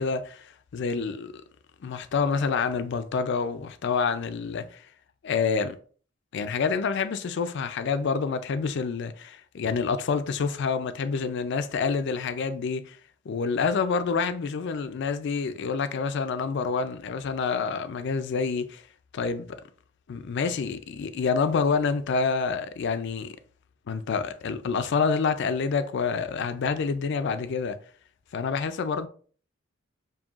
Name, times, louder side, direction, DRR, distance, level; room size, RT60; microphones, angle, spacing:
voice 1, 0.0-1.3 1.8-4.8 5.2-5.8 6.3-13.0 13.3-18.8 19.1-19.5 20.1-23.3 23.9-27.8 28.3-29.1, left 5 dB, 60° left, 0.4 m, -27 dB
5.3 x 2.7 x 2.4 m
head